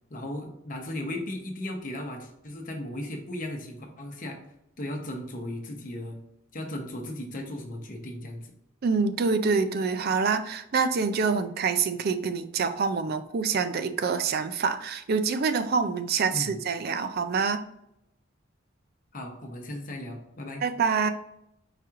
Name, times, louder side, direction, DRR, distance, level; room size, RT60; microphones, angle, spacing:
voice 1, 0.1-4.4 4.8-6.2 6.5-8.5 16.3-16.6 19.1-20.6, left 1 dB, 40° left, 2 dB, 0.8 m, -36 dB
voice 2, 8.8-17.6 20.6-21.1, right 5 dB, 50° right, 10 dB, 0.4 m, -26 dB
4.8 x 3.0 x 3.6 m, 0.79 s
head